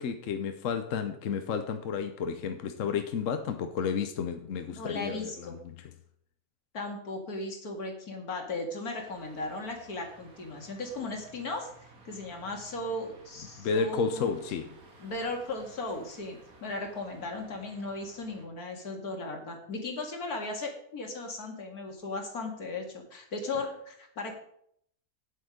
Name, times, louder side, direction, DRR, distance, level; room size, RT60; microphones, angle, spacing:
voice 1, 0.0-5.9 13.6-14.8, left 6 dB, 65° left, 1.1 m, -32 dB
voice 2, 4.8-5.6 6.7-11.7 12.0-14.3 15.0-24.3, left 2 dB, 90° left, 2.4 m, -36 dB
sound 1, 9.0-18.5, right 2 dB, 75° right, 2.0 m, -55 dB
8.8 x 7.8 x 5.1 m
omnidirectional pair, 1.5 m